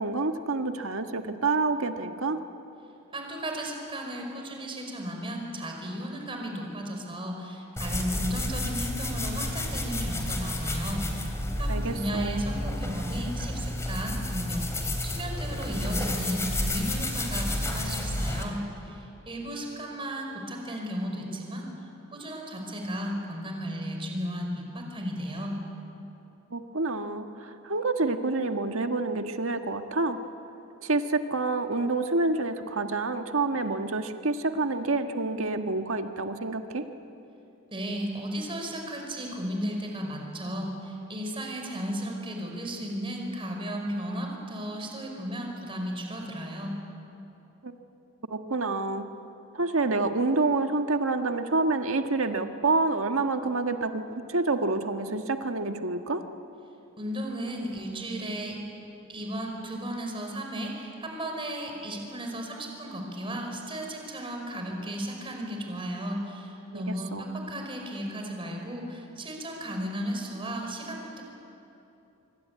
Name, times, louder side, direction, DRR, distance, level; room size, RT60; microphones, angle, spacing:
voice 1, 0.0-2.4 11.7-12.4 26.5-30.2 30.8-36.9 47.6-47.7 48.3-49.1 49.5-56.2 66.7-67.2, right 3 dB, 75° right, 6 dB, 1.6 m, -28 dB
voice 2, 3.1-21.7 22.1-25.6 37.7-46.8 57.0-58.6 59.1-71.2, equal, 25° right, 2 dB, 5.0 m, -34 dB
sound 1, 7.8-18.4, left 1 dB, 15° left, 3.2 m, -31 dB
25.5 x 24.5 x 9.5 m, 2.9 s
head